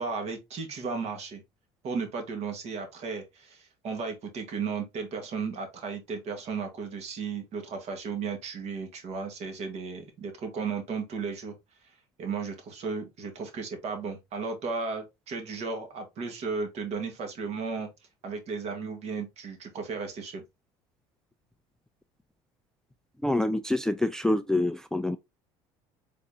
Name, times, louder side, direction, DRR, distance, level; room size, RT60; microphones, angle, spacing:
voice 1, 0.0-1.4 1.8-11.6 12.2-17.9 18.2-20.4, right 5 dB, 55° right, 1.5 m, -34 dB
voice 2, 23.2-25.2, left 1 dB, 5° left, 0.3 m, -26 dB
4.0 x 3.5 x 2.6 m
supercardioid pair, 85°, 14 cm